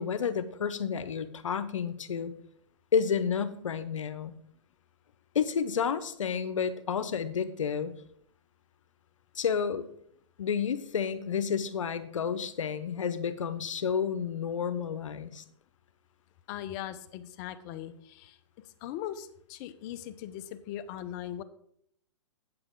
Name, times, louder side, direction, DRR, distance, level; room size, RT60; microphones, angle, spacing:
voice 1, 0.0-2.3 2.9-4.3 5.3-7.9 9.4-9.9 10.4-15.4, left 7 dB, 85° left, 12 dB, 0.8 m, -30 dB
voice 2, 16.5-18.4 18.8-21.4, left 11 dB, 40° left, 11 dB, 0.7 m, -39 dB
8.6 x 7.8 x 3.8 m, 0.69 s
hypercardioid pair, 135°, 16 cm